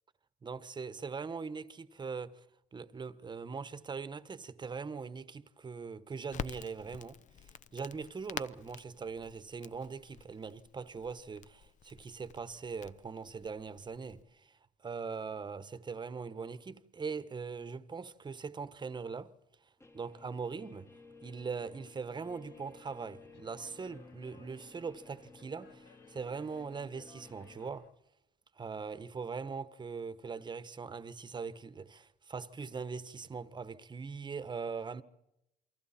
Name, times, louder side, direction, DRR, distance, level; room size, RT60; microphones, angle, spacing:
voice 1, 0.4-2.4 2.7-19.3 19.9-20.9 21.2-27.9 28.5-35.0, right 5 dB, 25° right, 1.2 m, -41 dB
Crackle, 6.3-14.2, left 8 dB, 45° left, 0.8 m, -48 dB
Guitar, 19.8-27.7, left 3 dB, 15° left, 1.4 m, -56 dB
sound 1, 22.3-27.9, left 8 dB, 80° left, 1.7 m, -63 dB
29.0 x 24.0 x 4.4 m
cardioid pair, 110°, 17 cm